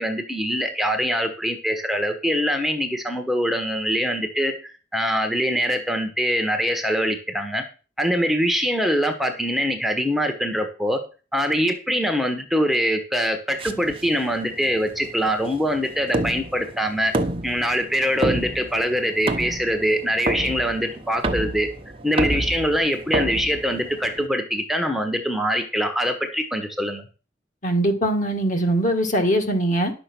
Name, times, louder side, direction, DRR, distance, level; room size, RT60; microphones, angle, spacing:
voice 1, 0.0-7.6 8.0-11.0 11.3-17.1 17.4-21.7 22.0-27.0, equal, ahead, 5 dB, 1.2 m, -23 dB
sound 1, 13.6-24.3, right 1 dB, 30° right, 1.1 m, -29 dB
voice 2, 27.6-29.9, right 1 dB, 45° left, 5 dB, 2.0 m, -21 dB
11.0 x 6.9 x 6.1 m, 0.35 s
head